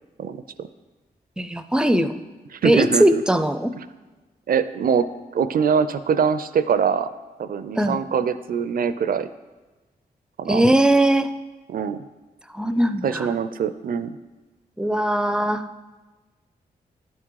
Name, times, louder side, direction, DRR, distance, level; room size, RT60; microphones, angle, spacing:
voice 1, 0.2-0.7 2.5-3.2 3.8-3.9 4.5-5.1 5.3-7.1 7.4-9.3 10.4-10.6 11.7-12.0 13.0-14.2, right 6 dB, 60° right, 13 dB, 0.4 m, -23 dB
voice 2, 1.4-2.1 2.6-3.7 7.8-8.0 10.5-11.3 12.5-13.3 14.8-15.6, right 1 dB, 5° right, 10 dB, 0.5 m, -19 dB
10.5 x 3.7 x 4.7 m, 1.2 s
cardioid pair, 55°, 17 cm